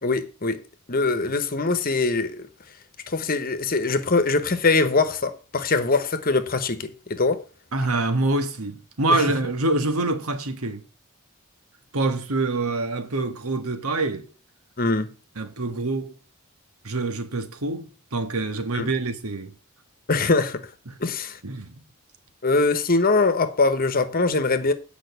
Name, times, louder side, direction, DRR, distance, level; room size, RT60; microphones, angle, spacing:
voice 1, 0.0-0.6 0.9-2.5 3.1-7.4 9.1-9.2 14.8-15.1 18.7-18.9 20.1-20.7 21.0-21.4 22.4-24.7, left 3 dB, 40° left, 1.1 m, -22 dB
voice 2, 7.7-10.8 11.9-14.3 15.4-16.2 16.8-19.5 20.9-21.0 21.4-21.8, right 2 dB, 85° right, 1.6 m, -26 dB
9.0 x 5.2 x 8.0 m
head